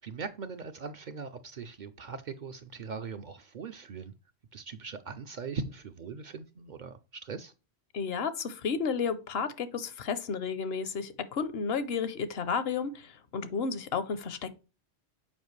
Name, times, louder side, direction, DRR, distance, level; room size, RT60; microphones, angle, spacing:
voice 1, 0.0-4.1 4.5-7.5, right 5 dB, 55° right, 0.6 m, -40 dB
voice 2, 7.9-14.5, left 5 dB, 70° left, 0.9 m, -32 dB
7.2 x 4.9 x 3.1 m
omnidirectional pair, 1.1 m